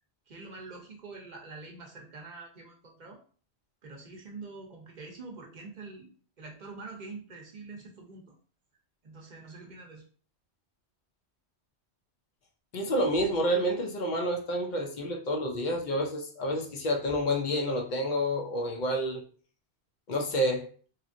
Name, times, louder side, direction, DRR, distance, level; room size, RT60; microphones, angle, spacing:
voice 1, 0.3-3.2 3.8-6.1 6.4-8.3 9.0-10.0, right 3 dB, 50° right, 0 dB, 0.7 m, -45 dB
voice 2, 12.7-19.2 20.1-20.7, equal, 55° left, 2 dB, 0.6 m, -29 dB
2.9 x 2.4 x 2.4 m, 0.43 s
omnidirectional pair, 1.1 m